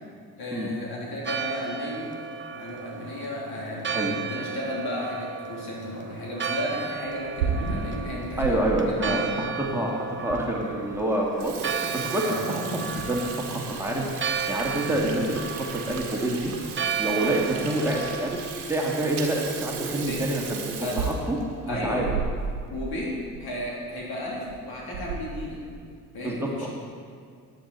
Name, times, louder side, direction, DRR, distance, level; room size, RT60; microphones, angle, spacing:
voice 1, 0.4-2.1 2.5-9.5 12.2-12.4 14.9-15.0 17.2-17.3 20.0-20.2 20.8-21.0 21.7-22.1 22.7-23.1 23.4-25.6 26.1-26.7, left 1 dB, 55° left, -4 dB, 3.5 m, -34 dB
Church bell, 1.3-18.3, right 6 dB, 25° right, 1.1 m, -34 dB
Water tap faucet / Sink (filling or washing), 7.2-8.5 9.0-9.1 9.8-9.9 10.3-10.4 10.8-11.0 11.3-22.7 23.0-23.1 23.3-23.5 24.3-24.5 24.9-25.4, right 5 dB, 75° right, 1.5 m, -34 dB
voice 2, 8.4-16.5 17.0-18.4 18.7-21.4 21.7-22.2 26.2-26.7, right 1 dB, 5° right, -3 dB, 2.5 m, -27 dB
19.0 x 8.3 x 4.3 m, 2.2 s
figure-of-eight pair, 45°, 44 cm